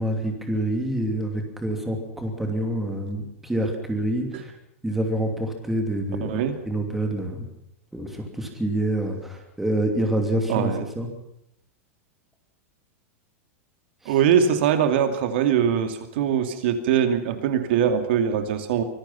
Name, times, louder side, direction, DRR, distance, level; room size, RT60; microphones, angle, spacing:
voice 1, 0.0-4.5 4.8-7.5 7.9-11.1 14.0-14.1, right 1 dB, 5° right, 3 dB, 2.8 m, -27 dB
voice 2, 6.2-6.6 10.5-10.8 14.1-18.8, right 8 dB, 50° right, 8 dB, 2.6 m, -22 dB
25.0 x 20.5 x 5.8 m, 0.79 s
supercardioid pair, 175°, 7 cm